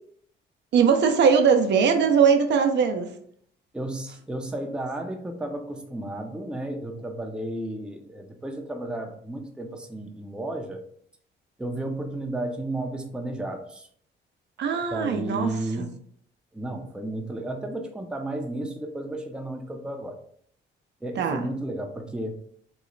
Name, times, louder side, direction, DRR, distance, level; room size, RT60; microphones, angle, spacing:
voice 1, 0.7-3.1 14.6-15.5 15.8-15.9 21.2-21.4, right 6 dB, 60° right, 6 dB, 0.5 m, -20 dB
voice 2, 3.7-10.8 11.6-13.9 14.9-16.0 16.5-20.2 21.0-22.4, right 1 dB, 5° right, 3 dB, 0.5 m, -33 dB
3.0 x 2.0 x 3.8 m, 0.62 s
cardioid pair, 90°, 20 cm